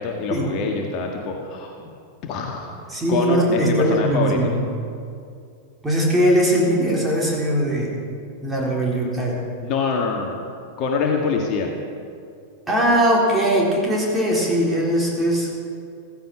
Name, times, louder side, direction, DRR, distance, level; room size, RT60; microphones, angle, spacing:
voice 1, 0.0-1.9 2.2-2.7 3.1-4.4 9.6-10.4 10.8-11.7, left 4 dB, 40° left, 1 dB, 1.7 m, -25 dB
voice 2, 2.9-4.6 5.8-7.9 8.4-9.4 12.7-15.6, equal, 10° right, -3 dB, 3.9 m, -20 dB
15.0 x 15.0 x 6.0 m, 2.4 s
figure-of-eight pair, 90°, 0 cm